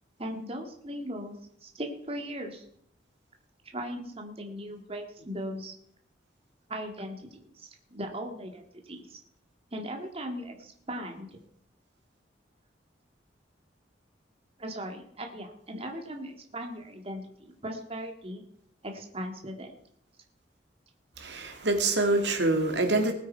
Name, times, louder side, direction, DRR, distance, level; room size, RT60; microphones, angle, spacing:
voice 1, 0.2-1.3 1.6-2.7 3.7-5.7 6.7-9.2 9.7-11.4 14.6-18.4 18.8-19.7, equal, 30° right, 3 dB, 1.9 m, -38 dB
voice 2, 21.2-23.1, right 2 dB, 65° right, 5 dB, 2.3 m, -25 dB
20.0 x 8.9 x 4.6 m, 0.69 s
head